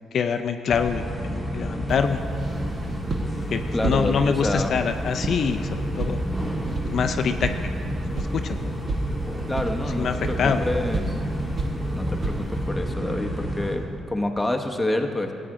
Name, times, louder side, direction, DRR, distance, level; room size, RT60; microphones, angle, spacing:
voice 1, 0.1-2.2 3.5-6.2 6.8-7.5 8.2-8.7 10.0-10.7, left 6 dB, 60° left, 7 dB, 0.4 m, -25 dB
sound 1, 0.7-13.8, equal, 15° right, 2.4 m, -30 dB
sound 2, 1.9-12.7, right 2 dB, 40° right, 0.9 m, -33 dB
voice 2, 3.7-4.7 9.5-11.2 11.9-15.3, left 1 dB, 10° left, 3 dB, 0.8 m, -28 dB
13.5 x 8.6 x 3.7 m, 2.6 s
cardioid pair, 90°, 0 cm